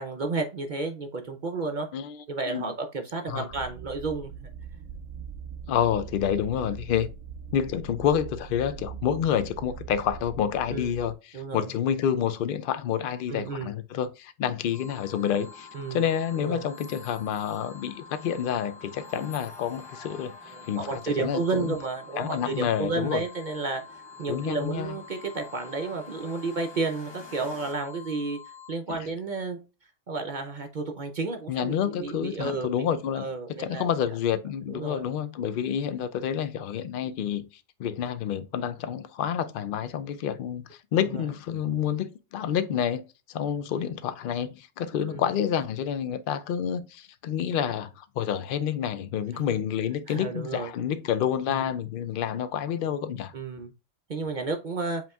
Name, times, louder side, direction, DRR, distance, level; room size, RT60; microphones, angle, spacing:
voice 1, 0.0-1.9 2.3-4.5 10.7-10.9 11.3-11.7 13.3-13.8 15.7-16.0 16.4-16.6 20.5-29.6 30.1-32.9 33.1-33.9 34.7-35.0 41.0-41.3 45.1-45.3 50.1-50.7 51.5-51.7 53.3-53.7 54.1-55.0, right 3 dB, 55° right, 0.6 m, -32 dB
sound 1, 3.5-11.1, right 7 dB, 75° right, 0.9 m, -41 dB
voice 2, 5.7-7.1 7.5-20.3 20.7-21.7 22.2-23.2 24.3-24.9 29.0-29.1 31.5-37.4 37.8-53.3, left 9 dB, 65° left, 0.5 m, -28 dB
sound 2, 14.7-28.7, left 6 dB, ahead, 1.9 m, -48 dB
sound 3, 14.9-27.7, left 2 dB, 25° left, 0.7 m, -51 dB
7.7 x 2.9 x 2.3 m
omnidirectional pair, 1.4 m